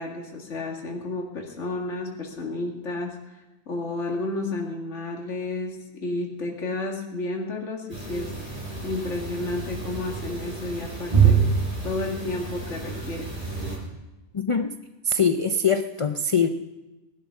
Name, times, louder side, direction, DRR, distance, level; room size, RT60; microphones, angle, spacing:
voice 1, 0.0-3.1 3.7-8.3 8.8-11.4 11.8-13.3, left 2 dB, 60° left, 0 dB, 2.4 m, -31 dB
sound 1, 7.9-13.8, right 6 dB, 25° right, 5.6 m, -26 dB
voice 2, 14.3-14.8 15.0-16.5, left 4 dB, 45° left, 7 dB, 0.4 m, -23 dB
19.0 x 12.0 x 5.8 m, 1.1 s
omnidirectional pair, 1.4 m